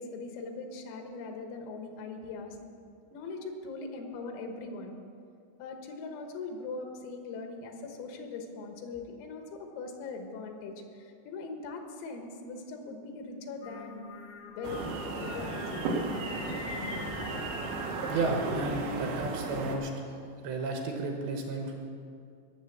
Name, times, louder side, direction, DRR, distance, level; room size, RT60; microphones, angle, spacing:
voice 1, 0.0-2.6 3.1-4.9 5.6-14.0 14.5-14.8 15.2-16.0, left 3 dB, 85° left, 4 dB, 4.0 m, -41 dB
Singing, 13.6-18.7, left 3 dB, 65° left, 1.2 m, -43 dB
sound 1, 14.6-19.8, right 3 dB, 90° right, 4.3 m, -35 dB
voice 2, 18.1-19.9 20.4-21.9, right 3 dB, 75° right, 2 dB, 2.9 m, -32 dB
18.0 x 7.3 x 7.3 m, 2.4 s
omnidirectional pair, 5.9 m